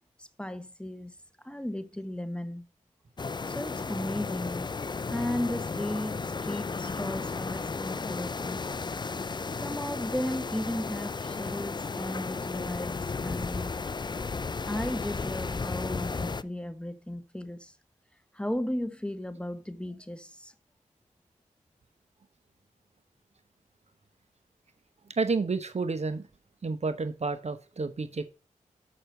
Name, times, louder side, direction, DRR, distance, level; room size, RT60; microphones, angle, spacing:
voice 1, 0.2-1.2 1.4-2.6 3.5-4.8 5.1-8.7 9.6-13.8 14.6-17.7 18.3-20.5, left 1 dB, 5° left, 1.0 m, -35 dB
sound 1, 3.2-16.4, left 4 dB, 30° left, 0.4 m, -34 dB
voice 2, 25.2-26.2 26.6-28.2, right 4 dB, 50° right, 1.0 m, -30 dB
6.5 x 5.9 x 6.5 m
cardioid pair, 40°, 14 cm